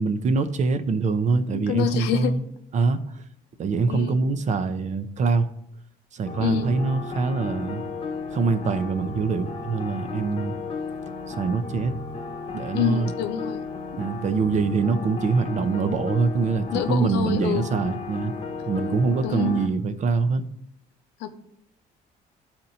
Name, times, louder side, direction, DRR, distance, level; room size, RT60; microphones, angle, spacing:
voice 1, 0.0-2.4 2.7-3.2 3.6-5.5 6.1-7.8 8.3-10.5 11.3-11.9 12.5-13.1 14.0-18.3 18.7-20.4, right 4 dB, 45° right, 11 dB, 0.6 m, -24 dB
voice 2, 1.5-2.3 3.9-4.2 6.4-6.7 12.7-13.6 16.7-17.8 19.2-19.6 21.2-21.3, left 9 dB, 90° left, 8 dB, 0.7 m, -27 dB
sound 1, 6.3-19.7, left 4 dB, 35° left, 1.0 m, -34 dB
12.5 x 4.3 x 2.7 m, 0.76 s
cardioid pair, 110°, 17 cm